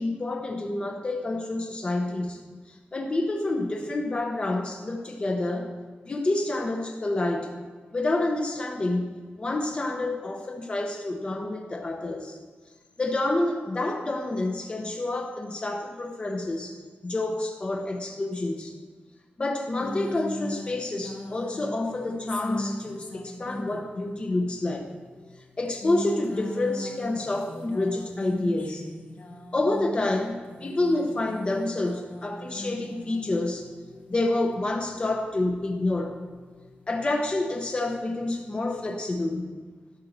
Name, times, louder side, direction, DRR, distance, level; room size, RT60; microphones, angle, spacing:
voice 1, 0.0-5.7 6.1-7.5 7.9-12.4 13.0-16.8 17.0-18.7 19.4-24.9 25.6-28.9 29.5-33.7 34.1-36.2 36.9-39.6, left 2 dB, 30° left, 3 dB, 0.9 m, -28 dB
sound 1, 19.8-39.1, left 1 dB, 55° left, 1.4 m, -40 dB
11.5 x 6.4 x 6.5 m, 1.4 s
wide cardioid pair, 135°, 4 cm